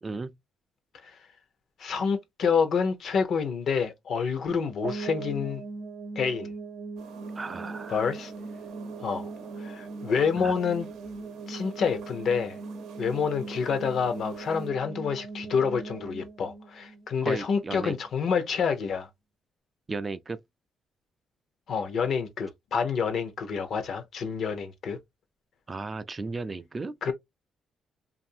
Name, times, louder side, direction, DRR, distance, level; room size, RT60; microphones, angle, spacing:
voice 1, 0.0-0.3 7.4-8.0 10.4-10.5 17.2-18.0 19.9-20.4 25.7-27.1, right 3 dB, 30° right, 0.3 m, -35 dB
voice 2, 1.8-5.6 6.2-6.5 7.9-8.3 9.0-9.3 9.6-10.9 11.5-12.6 13.0-19.1 21.7-25.0 27.0-27.1, left 6 dB, 65° left, 0.7 m, -28 dB
sound 1, 4.8-17.7, right 4 dB, 45° right, 0.7 m, -40 dB
sound 2, 7.0-14.7, right 6 dB, 85° right, 0.6 m, -49 dB
2.6 x 2.5 x 2.6 m
cardioid pair, 90°, 0 cm